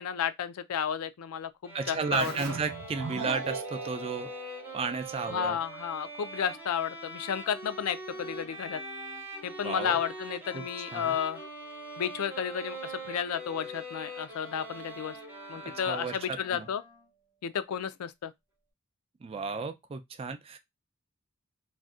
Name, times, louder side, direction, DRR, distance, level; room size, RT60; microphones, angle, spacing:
voice 1, 0.0-2.3 5.3-8.8 9.4-11.4 12.0-15.2 15.5-16.8 17.4-18.3, left 8 dB, 90° left, 0.4 m, -32 dB
sound 1, 1.6-16.6, right 1 dB, 10° right, 0.8 m, -42 dB
voice 2, 1.7-4.3 4.7-5.6 9.6-10.0 10.5-10.6 10.9-11.1 15.9-16.7 19.2-20.6, right 4 dB, 25° right, 0.3 m, -33 dB
Keyboard (musical), 2.1-5.5, right 4 dB, 80° right, 0.6 m, -40 dB
Wind instrument woodwind instrument, 8.1-17.1, left 2 dB, 20° left, 0.6 m, -54 dB
2.5 x 2.1 x 3.5 m
head